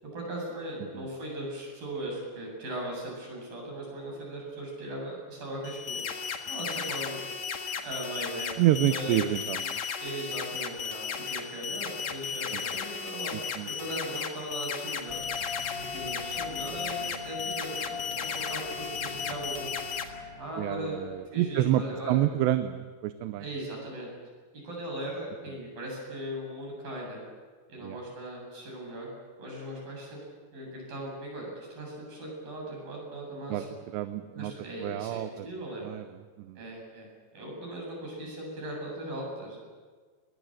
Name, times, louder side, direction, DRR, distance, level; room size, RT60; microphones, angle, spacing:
voice 1, 0.0-6.0 6.5-7.2 7.8-8.6 8.9-9.4 10.0-13.4 13.7-15.2 15.8-19.7 20.4-21.0 21.3-22.2 23.4-24.1 24.5-27.2 27.7-29.1 29.4-30.2 30.5-33.7 34.3-35.9 36.6-37.1 37.3-39.6, right 1 dB, 55° right, -1 dB, 9.7 m, -38 dB
sound 1, 5.6-20.0, left 6 dB, 55° left, 2.4 m, -35 dB
voice 2, 8.6-9.8 12.5-12.6 13.3-13.7 20.6-23.5 27.8-28.0 33.5-33.6 33.9-34.5 34.8-35.5 35.8-36.0 36.4-36.6, right 13 dB, 85° right, 10 dB, 3.0 m, -28 dB
sound 2, 15.1-21.5, left 5 dB, 35° right, 0.9 m, -41 dB
21.0 x 21.0 x 9.0 m, 1.5 s
omnidirectional pair, 4.9 m